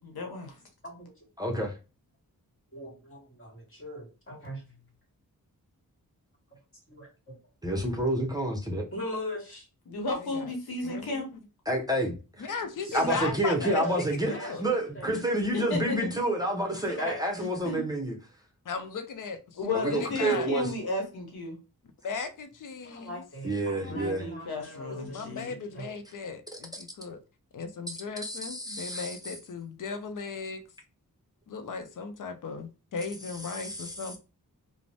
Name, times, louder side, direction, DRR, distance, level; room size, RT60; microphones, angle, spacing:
voice 1, 0.0-0.6 9.9-11.3 15.0-15.1 15.5-16.0 17.6-17.8 19.6-21.6 23.8-25.5, left 2 dB, 85° left, 0.9 m, -33 dB
voice 2, 1.4-1.7 7.6-8.8 11.7-12.5 12.9-18.2 19.7-20.7 23.4-24.2 27.9-29.3 33.4-33.9, right 1 dB, 10° right, 0.7 m, -29 dB
voice 3, 2.7-4.6 6.9-7.4 8.9-9.7 12.8-15.2 16.8-17.3 22.8-25.9, left 1 dB, 35° left, 1.4 m, -39 dB
voice 4, 10.2-10.5 10.8-11.2 12.4-14.6 18.7-20.5 22.0-23.2 25.1-27.2 27.5-30.6 31.5-34.2, left 5 dB, 60° left, 0.6 m, -37 dB
2.5 x 2.0 x 3.2 m
cardioid pair, 45°, 36 cm